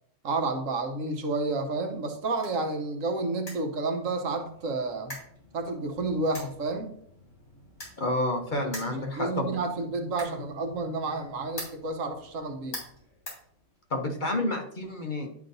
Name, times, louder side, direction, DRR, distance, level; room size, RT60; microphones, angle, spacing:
voice 1, 0.2-5.2 5.5-6.9 8.6-12.8, right 3 dB, 75° right, 5 dB, 1.3 m, -30 dB
sound 1, 1.9-14.1, left 1 dB, 60° left, 3.5 m, -47 dB
voice 2, 8.0-9.5 13.9-15.3, left 1 dB, 40° left, 2 dB, 0.9 m, -29 dB
10.5 x 5.1 x 2.6 m, 0.68 s
omnidirectional pair, 1.4 m